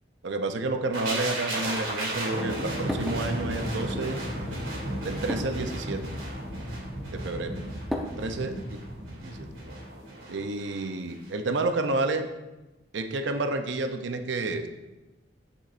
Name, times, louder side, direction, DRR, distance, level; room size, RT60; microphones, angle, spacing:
voice 1, 0.2-4.2 5.0-6.0 7.1-7.5 8.2-8.5 9.2-9.5 10.3-12.3 12.9-14.7, right 2 dB, 70° right, 7 dB, 0.6 m, -30 dB
sound 1, 0.9-10.8 11.1-11.3, right 1 dB, 85° right, 2.8 m, -34 dB
sound 2, 1.3-8.7, equal, ahead, 0.8 m, -40 dB
9.6 x 7.2 x 2.6 m, 1.1 s
head